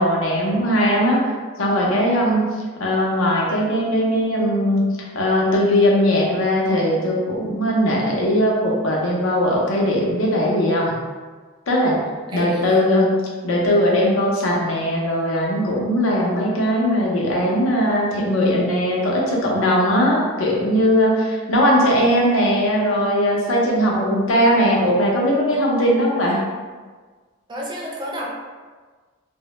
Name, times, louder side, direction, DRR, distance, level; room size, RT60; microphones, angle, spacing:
voice 1, 0.0-1.3 1.6-2.4 2.8-11.0 11.7-12.0 12.3-13.1 13.4-26.4, equal, 85° left, -3 dB, 0.6 m, -19 dB
voice 2, 12.3-12.8 27.5-28.3, equal, 25° right, -2 dB, 0.3 m, -31 dB
2.1 x 2.0 x 2.9 m, 1.4 s
head